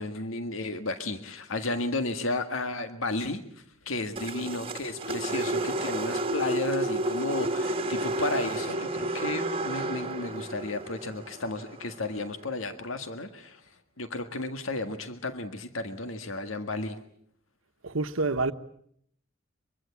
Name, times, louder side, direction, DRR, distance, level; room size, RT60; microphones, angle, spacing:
voice 1, 0.0-13.6 14.0-17.0, left 2 dB, 70° left, 1.8 m, -33 dB
sound 1, 4.2-12.4, right 2 dB, 25° right, 1.6 m, -31 dB
voice 2, 17.8-18.5, right 3 dB, 70° right, 1.2 m, -27 dB
24.0 x 23.5 x 8.4 m
head